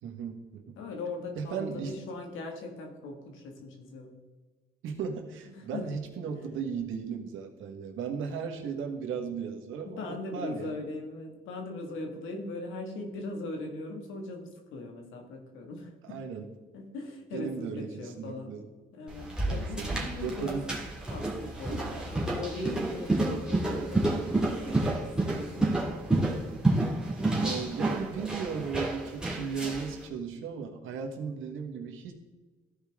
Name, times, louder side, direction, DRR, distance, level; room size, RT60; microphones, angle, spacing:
voice 1, 0.0-0.8 1.3-1.9 4.8-10.8 16.0-16.5 17.3-18.6 19.5-20.0 20.2-20.7 21.7-21.8 27.4-32.1, right 6 dB, 85° right, 3 dB, 1.4 m, -36 dB
voice 2, 0.8-4.2 5.5-5.9 6.3-6.4 9.9-16.2 16.7-18.5 18.9-20.6 21.1-24.2 24.6-25.8, left 2 dB, 90° left, 3 dB, 1.9 m, -40 dB
sound 1, 19.1-30.0, right 2 dB, 5° right, 2.1 m, -30 dB
14.5 x 5.0 x 3.6 m, 1.3 s
cardioid pair, 90°, 20 cm